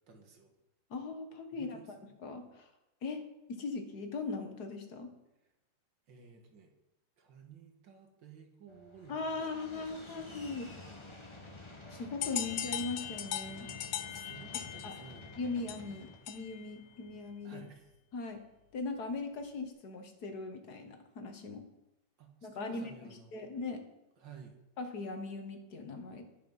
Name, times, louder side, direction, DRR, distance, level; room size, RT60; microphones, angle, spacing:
voice 1, 0.1-0.5 1.5-2.0 6.1-6.7 7.2-9.8 14.1-15.6 17.4-17.9 22.2-23.6 24.2-24.5, right 6 dB, 75° right, 4 dB, 2.3 m, -54 dB
voice 2, 0.9-1.8 2.2-2.7 3.0-3.2 3.5-5.1 9.1-11.2 11.9-13.7 14.8-14.9 15.4-17.6 18.1-18.4 18.7-21.6 22.4-23.8 24.8-26.3, left 3 dB, 55° left, 6 dB, 1.8 m, -39 dB
sound 1, 8.7-17.4, left 2 dB, 15° left, 1.3 m, -51 dB
sound 2, 12.2-16.7, left 11 dB, 75° left, 1.4 m, -40 dB
10.5 x 9.4 x 5.5 m, 0.92 s
omnidirectional pair, 2.0 m